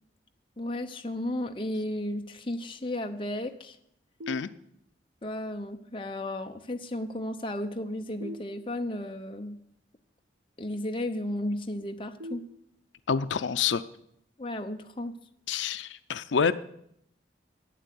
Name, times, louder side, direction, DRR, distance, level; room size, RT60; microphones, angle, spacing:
voice 1, 0.6-3.8 5.2-9.6 10.6-12.5 14.4-15.2, left 1 dB, 30° left, 5 dB, 0.8 m, -34 dB
sound 1, 4.2-5.1 8.2-9.2 12.2-13.2, left 1 dB, 80° right, 1.3 m, -45 dB
voice 2, 13.1-13.8 15.5-16.5, left 6 dB, 85° left, 13 dB, 0.5 m, -27 dB
11.5 x 9.1 x 8.4 m, 0.74 s
head